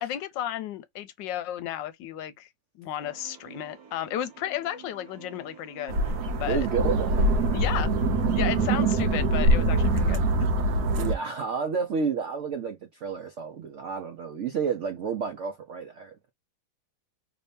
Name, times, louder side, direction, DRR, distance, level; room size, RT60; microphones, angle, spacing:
voice 1, 0.0-2.5 2.7-6.7 7.5-7.9 8.3-10.2, left 11 dB, 80° left, 1.3 m, -33 dB
sound 1, 3.0-8.4, right 9 dB, 40° right, 1.3 m, -49 dB
sound 2, 5.9-11.1, right 2 dB, 65° right, 1.2 m, -23 dB
voice 2, 6.5-7.6 10.8-16.1, right 6 dB, 85° right, 0.6 m, -31 dB
3.3 x 2.7 x 3.3 m
omnidirectional pair, 2.1 m